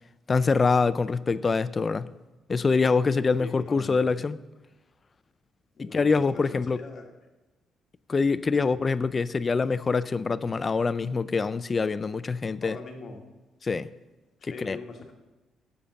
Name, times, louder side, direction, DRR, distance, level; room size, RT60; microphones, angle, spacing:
voice 1, 0.3-2.1 2.5-4.4 5.8-6.8 8.1-12.8 13.6-13.9 14.4-14.8, left 4 dB, 35° left, 0.4 m, -25 dB
voice 2, 3.4-4.1 5.7-7.1 8.5-8.7 12.6-13.2 14.4-15.1, left 3 dB, 50° left, 1.7 m, -41 dB
7.6 x 7.0 x 7.0 m
cardioid pair, 90°, 0 cm